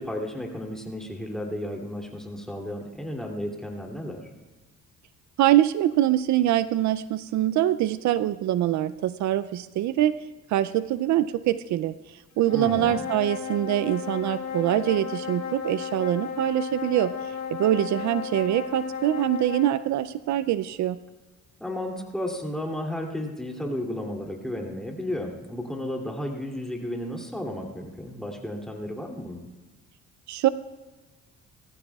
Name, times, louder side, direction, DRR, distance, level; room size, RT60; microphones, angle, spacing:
voice 1, 0.0-4.3 12.5-13.0 21.6-29.4, left 1 dB, ahead, 0 dB, 2.7 m, -33 dB
voice 2, 5.4-10.2 10.5-17.1 17.5-21.0 30.3-30.5, right 13 dB, 70° right, 15 dB, 0.5 m, -24 dB
sound 1, 12.4-19.8, left 7 dB, 65° left, 2.9 m, -34 dB
19.0 x 14.5 x 2.3 m, 1.2 s
cardioid pair, 90°, 30 cm